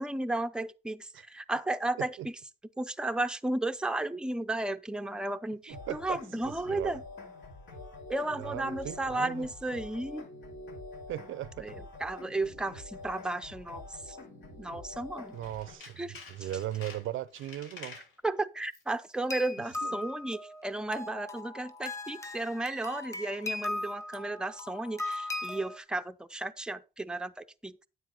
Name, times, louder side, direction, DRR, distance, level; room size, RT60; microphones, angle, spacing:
voice 1, 0.0-2.3 2.8-7.0 8.1-10.3 11.6-14.2 14.6-15.4 16.0-16.2 18.2-27.8, right 2 dB, 5° right, 0.6 m, -34 dB
sound 1, 5.7-15.7, left 2 dB, 70° left, 5.2 m, -46 dB
voice 2, 5.7-6.2 6.7-7.0 8.4-9.5 11.1-11.7 15.3-16.0 16.3-18.0 19.8-20.0, right 13 dB, 80° right, 0.6 m, -38 dB
Tools, 15.3-18.1 18.6-19.0 19.2-19.3, left 4 dB, 90° left, 3.6 m, -49 dB
sound 2, 19.3-25.8, left 2 dB, 15° left, 1.5 m, -38 dB
9.5 x 8.1 x 3.9 m
cardioid pair, 90°, 20 cm